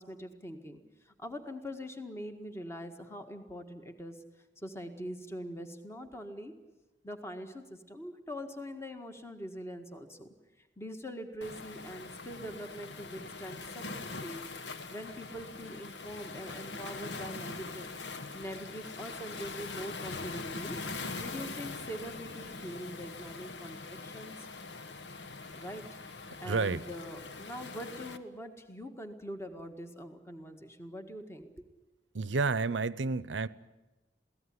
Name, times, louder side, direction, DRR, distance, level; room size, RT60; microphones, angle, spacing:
voice 1, 0.0-4.2 4.6-6.5 7.0-10.3 10.8-14.4 14.9-17.9 18.3-20.8 21.2-24.5 25.5-25.8 26.4-31.7, equal, 15° left, 6 dB, 1.8 m, -43 dB
Waves surf, 11.4-28.2, left 3 dB, 65° left, 1.2 m, -42 dB
voice 2, 26.4-26.8 32.1-33.5, right 4 dB, 85° right, 18 dB, 0.8 m, -30 dB
23.0 x 17.0 x 9.9 m, 1.1 s
head